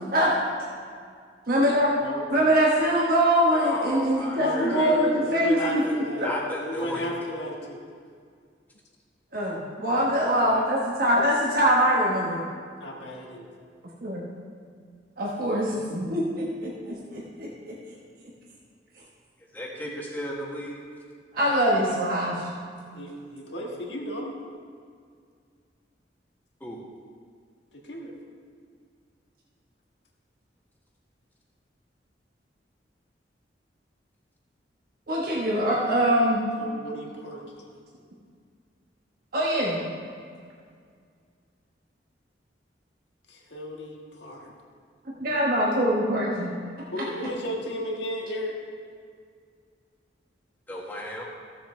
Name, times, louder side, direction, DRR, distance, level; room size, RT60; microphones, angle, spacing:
voice 1, 1.5-2.0 2.3-6.3 9.3-12.4 14.0-14.2 15.2-17.7 21.3-22.5 35.1-36.4 39.3-39.8 45.1-46.5 47.0-47.1, equal, 55° right, -4 dB, 1.3 m, -23 dB
voice 2, 3.5-5.1 5.6-7.1 9.9-10.6 19.5-20.8 21.4-21.7 26.6-26.8 50.7-51.3, left 1 dB, 10° left, -4 dB, 1.6 m, -36 dB
voice 3, 4.3-6.3 6.6-7.8 12.8-13.5 22.9-24.3 27.7-28.1 36.6-37.7 43.3-44.5 46.9-48.6, equal, 75° left, -1 dB, 1.7 m, -34 dB
15.0 x 7.4 x 3.3 m, 2.1 s
head